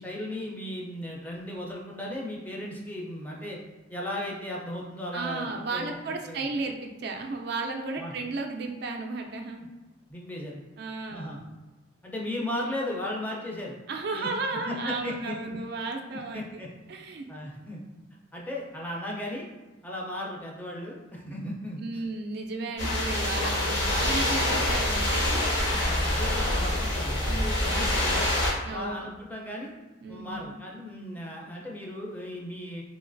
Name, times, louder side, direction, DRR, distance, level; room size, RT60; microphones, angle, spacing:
voice 1, 0.0-3.6 3.9-6.0 6.2-6.5 8.0-8.1 10.1-10.6 11.1-11.4 12.0-13.8 14.1-14.3 14.6-15.6 16.3-16.7 17.3-17.8 18.3-19.5 19.8-22.0 25.7-28.3 28.7-29.7 30.1-32.8, left 1 dB, 10° left, -3 dB, 0.4 m, -36 dB
voice 2, 5.1-9.6 10.8-11.4 13.9-16.4 16.9-17.3 21.8-25.2 27.3-27.9 28.6-29.1 30.0-30.6, right 3 dB, 55° right, 3 dB, 0.3 m, -34 dB
sound 1, 22.8-28.5, left 1 dB, 80° left, 1.2 m, -26 dB
3.1 x 2.8 x 2.5 m, 1.1 s
head